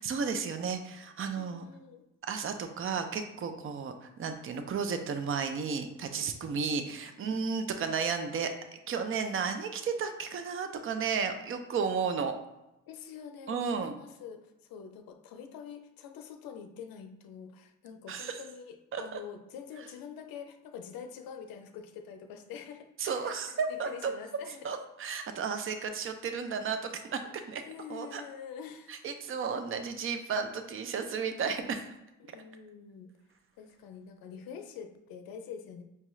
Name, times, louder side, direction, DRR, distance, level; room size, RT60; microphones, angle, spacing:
voice 1, 0.0-1.7 2.2-8.5 8.9-12.4 13.5-13.9 18.1-18.4 18.9-19.2 23.0-24.1 24.6-27.6 27.9-28.2 28.9-31.9, right 5 dB, 40° right, 7 dB, 0.5 m, -33 dB
voice 2, 1.4-2.0 6.4-6.9 12.9-24.7 27.7-29.0 32.2-33.1 33.6-35.8, left 7 dB, 90° left, 6 dB, 0.5 m, -46 dB
5.6 x 2.3 x 3.1 m, 0.91 s
cardioid pair, 95°, 34 cm